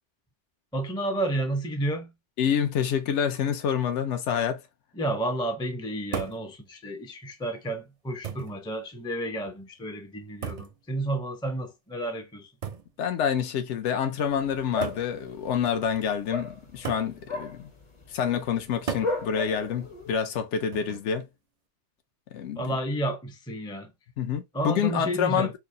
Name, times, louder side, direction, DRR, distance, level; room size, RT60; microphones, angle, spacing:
voice 1, 0.7-2.1 4.9-12.5 22.6-23.9 24.5-25.5, right 1 dB, 5° left, 0.3 m, -31 dB
voice 2, 2.4-4.6 13.0-17.7 18.1-21.3 22.3-22.8 24.2-25.5, left 8 dB, 80° left, 0.9 m, -27 dB
sound 1, 6.1-6.5 7.5-7.6 8.2-8.6 10.4-10.8 12.6-12.9 14.0-14.1 14.8-15.1 16.8-17.1 18.9-19.2 20.7-21.1, right 6 dB, 50° right, 0.5 m, -34 dB
sound 2, 14.2-20.1, left 3 dB, 30° left, 0.7 m, -37 dB
4.6 x 2.1 x 2.6 m
omnidirectional pair, 1.2 m